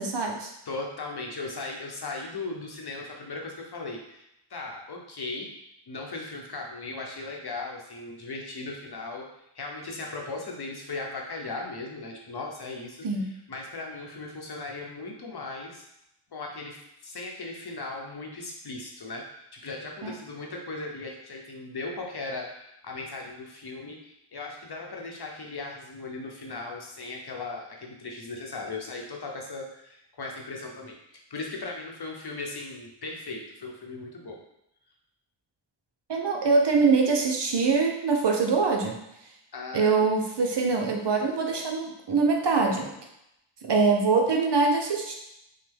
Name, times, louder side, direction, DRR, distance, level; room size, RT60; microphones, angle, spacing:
voice 1, 0.0-0.5 13.0-13.3 20.0-20.1 36.1-39.0 39.7-42.9 43.6-45.1, right 4 dB, 55° right, 1 dB, 0.8 m, -23 dB
voice 2, 0.7-4.2 4.5-5.5 5.9-15.9 16.3-31.0 31.3-34.4 39.5-40.0, left 3 dB, 50° left, 0 dB, 1.0 m, -38 dB
5.6 x 2.2 x 3.5 m, 0.81 s
cardioid pair, 65°, 49 cm